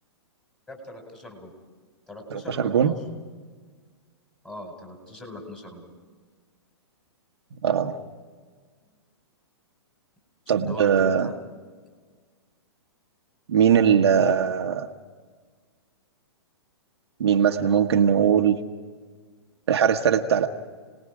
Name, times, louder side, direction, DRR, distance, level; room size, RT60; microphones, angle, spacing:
voice 1, 0.7-1.5 2.1-2.9 4.4-5.9 10.6-11.3, left 2 dB, 5° left, 2 dB, 4.8 m, -40 dB
voice 2, 2.3-3.0 7.6-8.0 10.5-11.3 13.5-14.9 17.2-18.6 19.7-20.5, right 8 dB, 70° right, 4 dB, 1.3 m, -20 dB
30.0 x 19.5 x 5.0 m, 1.5 s
hypercardioid pair, 125°, 14 cm